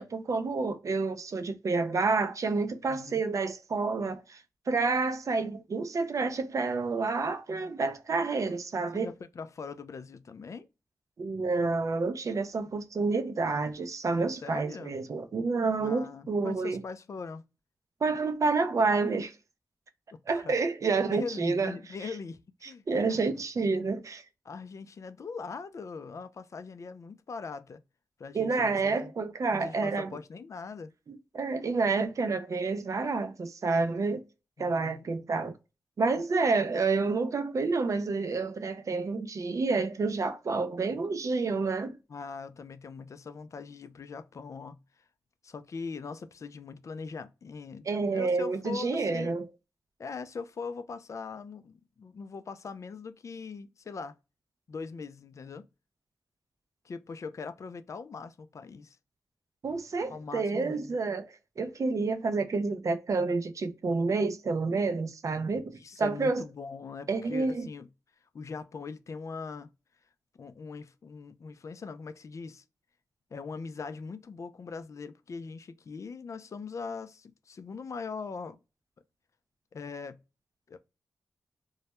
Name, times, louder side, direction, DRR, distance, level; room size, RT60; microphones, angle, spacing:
voice 1, 0.0-4.4 4.7-9.1 11.2-16.8 18.0-19.3 20.3-21.7 22.9-24.2 28.3-30.2 31.1-34.2 34.6-35.5 36.0-42.0 47.9-49.4 59.6-66.4 67.1-67.7, right 4 dB, 55° right, 0.5 m, -29 dB
voice 2, 2.9-3.2 8.9-10.7 14.4-15.0 15.8-17.4 20.1-20.5 21.1-22.8 23.1-23.2 24.4-27.8 28.2-29.1 29.5-30.9 34.6-35.1 42.1-44.8 45.4-49.3 50.0-54.1 54.7-55.7 56.8-59.0 60.1-61.0 65.7-67.9 68.3-69.7 70.4-72.6 73.3-78.6 79.7-80.2 80.7-80.8, left 5 dB, 50° left, 0.3 m, -41 dB
2.2 x 2.1 x 2.9 m
cardioid pair, 60°, 7 cm